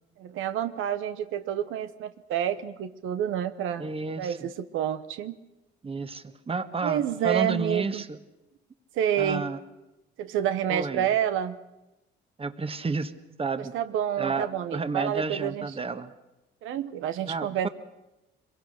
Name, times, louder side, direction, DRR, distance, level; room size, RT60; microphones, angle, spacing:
voice 1, 0.2-3.9 4.2-5.4 6.8-8.0 8.9-9.5 10.2-11.6 13.7-15.7 16.6-17.7, right 10 dB, 90° right, 11 dB, 1.0 m, -28 dB
voice 2, 3.8-4.5 5.8-8.2 9.2-9.6 10.7-11.1 12.4-13.8 14.2-16.1 17.3-17.7, right 4 dB, 30° right, 10 dB, 1.5 m, -31 dB
24.0 x 22.0 x 6.6 m, 0.97 s
cardioid pair, 90°, 20 cm